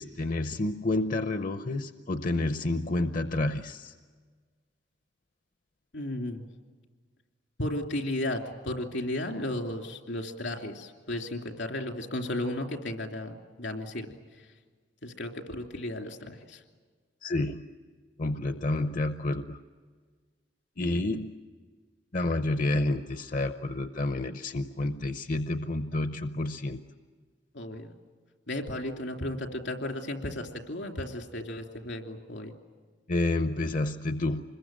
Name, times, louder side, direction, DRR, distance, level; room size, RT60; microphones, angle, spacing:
voice 1, 0.0-3.9 17.2-17.6 18.2-19.6 20.8-21.4 22.1-26.8 33.1-34.4, left 2 dB, 45° left, 9 dB, 0.7 m, -29 dB
voice 2, 5.9-6.4 7.6-14.1 15.0-16.6 27.5-27.9 28.5-32.5, left 1 dB, 85° left, 3 dB, 2.9 m, -34 dB
26.0 x 21.5 x 9.0 m, 1.5 s
head